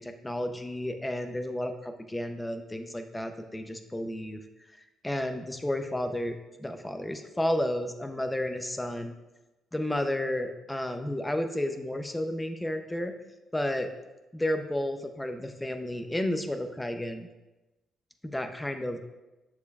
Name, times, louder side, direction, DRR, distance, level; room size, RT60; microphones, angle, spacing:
voice 1, 0.0-4.4 5.0-9.1 9.7-13.1 13.5-13.9 14.3-17.3 18.2-19.0, left 1 dB, 10° left, 7 dB, 0.6 m, -32 dB
7.0 x 6.6 x 2.4 m, 1.0 s
cardioid pair, 90°, 0 cm